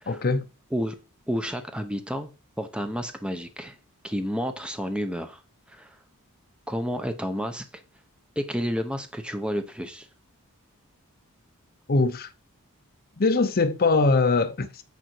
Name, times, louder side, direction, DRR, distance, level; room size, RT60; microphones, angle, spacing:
voice 1, 0.1-0.5 11.9-12.3 13.2-14.8, left 3 dB, 45° left, 0.7 m, -22 dB
voice 2, 1.3-2.3 2.6-3.8 4.0-5.4 5.7-6.0 6.7-7.8 8.4-10.1, equal, 5° right, 0.8 m, -30 dB
9.2 x 5.0 x 4.5 m
head